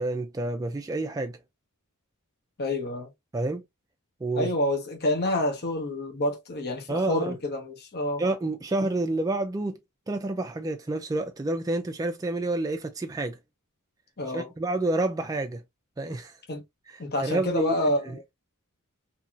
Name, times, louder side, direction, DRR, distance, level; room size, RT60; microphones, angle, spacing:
voice 1, 0.0-1.4 3.3-3.6 4.2-4.5 6.9-7.4 8.2-9.8 10.1-13.4 14.3-15.6 16.0-16.3 17.2-17.9, right 2 dB, 15° right, 0.3 m, -29 dB
voice 2, 2.6-3.1 4.4-8.2 14.2-14.5 16.5-16.6 17.0-18.2, left 1 dB, 45° left, 0.9 m, -28 dB
2.7 x 2.6 x 2.5 m
head